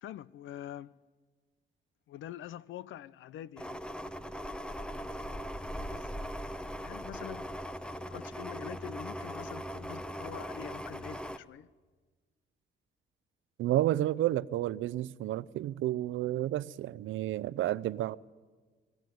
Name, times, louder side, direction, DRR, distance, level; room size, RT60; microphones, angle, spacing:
voice 1, 0.0-0.9 2.1-3.8 5.8-6.3 6.8-7.5 8.0-11.7, left 11 dB, 75° left, 0.7 m, -45 dB
sound 1, 3.6-11.4, equal, 5° left, 0.9 m, -40 dB
voice 2, 13.6-18.2, right 14 dB, 80° right, 0.6 m, -31 dB
24.0 x 15.0 x 9.3 m
cardioid pair, 90°, 20 cm